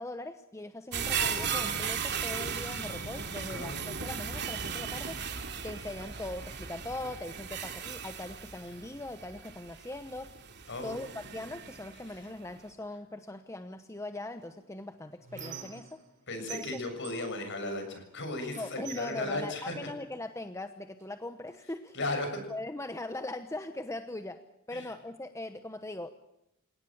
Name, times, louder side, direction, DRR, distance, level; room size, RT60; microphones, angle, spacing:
voice 1, 0.0-5.2 5.6-10.4 10.8-16.0 16.5-16.8 18.5-22.0 22.5-26.1, left 2 dB, 15° left, 8 dB, 1.0 m, -40 dB
sound 1, 0.9-12.1 12.6-12.7, right 6 dB, 50° right, 2.7 m, -36 dB
voice 2, 3.5-3.8 8.7-8.8 10.7-11.0 12.1-12.3 16.3-19.7 21.9-22.4 24.7-24.9, left 2 dB, 55° left, 6 dB, 6.9 m, -36 dB
Squeak, 14.4-16.2 16.5-18.1 18.5-20.2 21.0-21.1 21.5-22.5, right 7 dB, 35° right, 5.5 m, -48 dB
29.0 x 18.0 x 7.3 m, 0.84 s
head